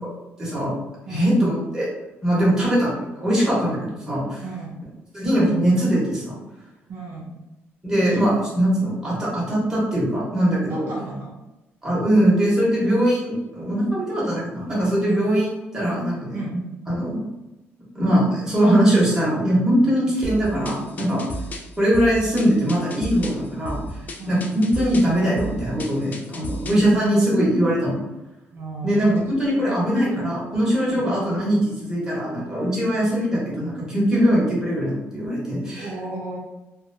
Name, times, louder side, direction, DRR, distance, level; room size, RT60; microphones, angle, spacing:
voice 1, 0.4-0.7 1.1-1.9 2.2-4.4 5.1-6.4 7.8-10.9 11.8-16.6 16.9-17.3 17.9-21.2 21.8-23.8 24.3-28.0 28.8-35.9, equal, 15° right, -7 dB, 1.0 m, -21 dB
voice 2, 4.4-4.8 6.9-7.4 8.1-8.2 10.7-11.4 15.0-15.3 16.3-16.6 19.8-19.9 24.2-24.4 28.5-29.1 29.5-29.7 30.1-30.3 30.9-31.0 35.8-36.4, right 3 dB, 55° right, -3 dB, 0.5 m, -35 dB
sound 1, 20.2-26.9, equal, 35° left, 0.3 m, -34 dB
2.5 x 2.1 x 2.6 m, 1.0 s
cardioid pair, 140°, 5 cm